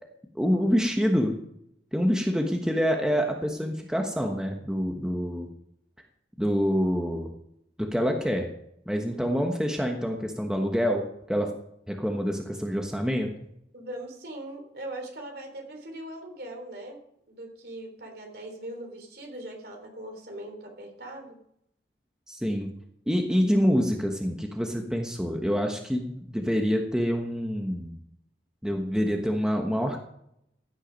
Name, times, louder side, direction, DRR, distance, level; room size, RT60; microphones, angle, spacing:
voice 1, 0.3-1.4 1.9-5.5 6.4-7.3 7.8-8.5 8.9-11.5 11.9-13.3 22.3-22.7 23.1-27.9 28.6-30.0, equal, 5° right, 2 dB, 1.2 m, -26 dB
voice 2, 13.7-17.0 17.3-21.4, right 1 dB, 55° right, 3 dB, 3.6 m, -40 dB
16.0 x 9.9 x 5.3 m, 0.76 s
head